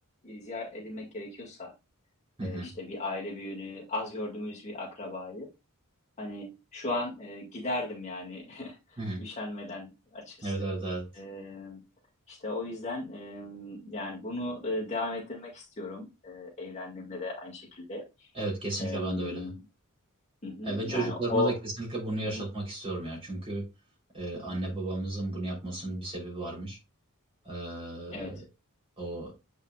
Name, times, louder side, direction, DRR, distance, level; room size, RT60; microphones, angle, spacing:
voice 1, 0.2-1.7 2.4-5.5 6.2-10.5 11.2-11.8 12.3-18.0 18.8-19.6 20.4-21.5 22.2-22.4 24.3-24.6 28.1-28.4, left 2 dB, 30° left, -2 dB, 2.0 m, -36 dB
voice 2, 2.4-2.7 9.0-9.2 10.4-11.1 18.3-19.5 20.6-23.7 24.1-26.8 27.4-28.4 29.0-29.3, right 2 dB, 25° right, -3 dB, 3.4 m, -34 dB
8.1 x 5.6 x 2.3 m, 0.24 s
head